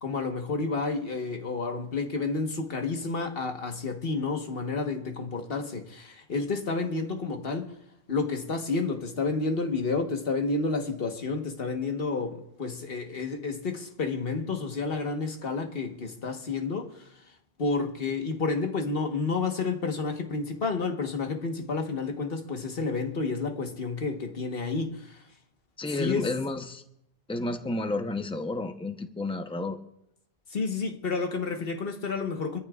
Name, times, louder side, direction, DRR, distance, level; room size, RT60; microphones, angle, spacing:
voice 1, 0.0-7.7 8.1-17.3 17.6-25.3 26.0-26.3 30.5-32.6, left 4 dB, 65° left, 1.5 m, -30 dB
voice 2, 25.8-26.8 27.3-29.8, left 2 dB, 5° left, 0.7 m, -31 dB
25.0 x 14.0 x 2.4 m
omnidirectional pair, 1.0 m